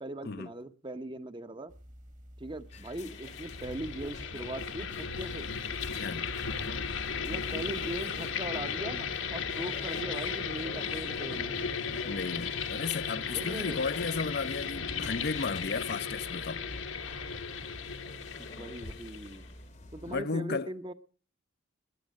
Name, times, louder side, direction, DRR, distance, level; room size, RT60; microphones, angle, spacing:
voice 1, 0.0-1.7 2.4-5.5 7.2-11.7 13.3-13.9 18.4-19.5 19.9-20.9, right 1 dB, 25° right, 0.8 m, -40 dB
sound 1, 1.7-20.2, equal, 40° right, 1.4 m, -52 dB
sound 2, 2.7-20.2, left 3 dB, 35° left, 0.9 m, -51 dB
sound 3, 2.8-19.5, left 6 dB, 75° left, 1.2 m, -36 dB
voice 2, 5.9-6.3 12.0-16.6 20.1-20.7, left 4 dB, 55° left, 0.6 m, -34 dB
21.0 x 8.4 x 6.3 m
head